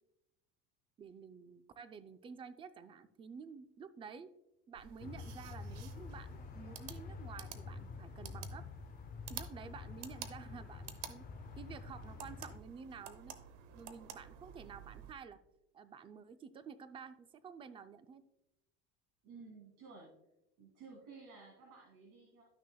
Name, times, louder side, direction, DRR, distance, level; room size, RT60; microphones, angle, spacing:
voice 1, 1.0-4.3 4.7-8.7 9.3-11.3 11.6-13.4 13.7-15.4 15.7-18.2, right 6 dB, 15° right, 11 dB, 0.4 m, -51 dB
sound 1, 4.7-15.1, right 9 dB, 80° right, 0.8 m, -52 dB
sound 2, 5.0-12.6, left 4 dB, 25° left, 0.6 m, -48 dB
voice 2, 19.2-20.1 20.6-22.4, right 4 dB, 60° right, -2 dB, 2.2 m, -54 dB
12.5 x 6.2 x 2.2 m, 0.91 s
cardioid pair, 135°, 32 cm